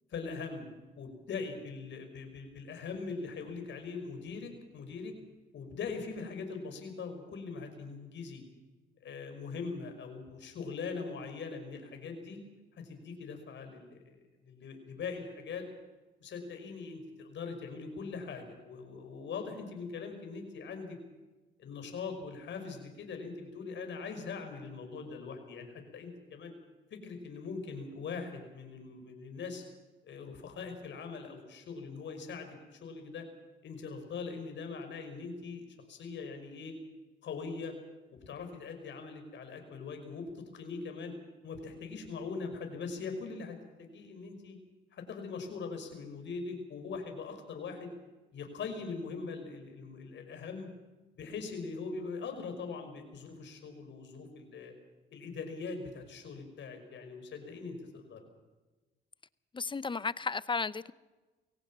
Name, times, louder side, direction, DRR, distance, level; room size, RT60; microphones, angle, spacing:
voice 1, 0.1-0.7 1.0-5.1 5.5-8.4 9.0-12.4 12.7-14.2 14.4-15.7 16.2-21.0 21.6-26.5 26.9-29.6 30.0-33.2 33.6-36.7 37.2-37.7 38.1-41.1 41.4-44.6 44.9-47.9 48.3-50.7 51.2-54.7 55.1-58.2, left 4 dB, 65° left, 5.7 m, -41 dB
voice 2, 59.5-60.9, left 4 dB, 25° left, 0.7 m, -34 dB
22.5 x 17.5 x 7.4 m
cardioid pair, 90°, 20 cm